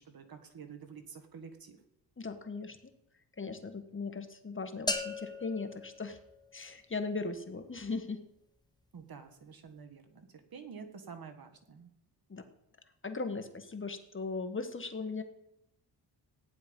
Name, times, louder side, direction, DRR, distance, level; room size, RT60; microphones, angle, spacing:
voice 1, 0.0-1.8 8.9-11.9, right 6 dB, 55° right, 7 dB, 1.8 m, -49 dB
voice 2, 2.2-2.8 3.4-6.2 6.5-8.2 12.3-12.4 13.0-15.2, left 4 dB, 30° left, 7 dB, 1.5 m, -38 dB
sound 1, 4.9-6.9, left 2 dB, 10° left, 1.2 m, -38 dB
15.0 x 9.9 x 5.4 m, 0.81 s
cardioid pair, 85°, 42 cm